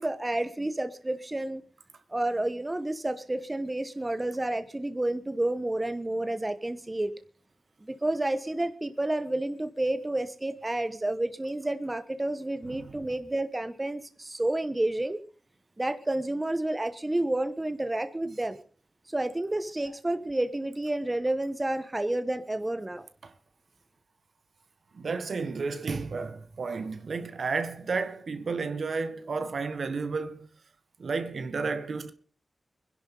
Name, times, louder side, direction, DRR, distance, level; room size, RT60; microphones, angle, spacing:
voice 1, 0.0-1.6 2.1-7.1 7.8-15.2 15.8-18.6 19.1-23.1, right 1 dB, 20° right, 1.1 m, -30 dB
voice 2, 12.6-13.1 19.8-19.9 23.2-23.3 24.9-30.5 31.0-32.1, right 4 dB, 70° right, 1.6 m, -32 dB
25.0 x 11.0 x 3.9 m
wide cardioid pair, 115°, 0 cm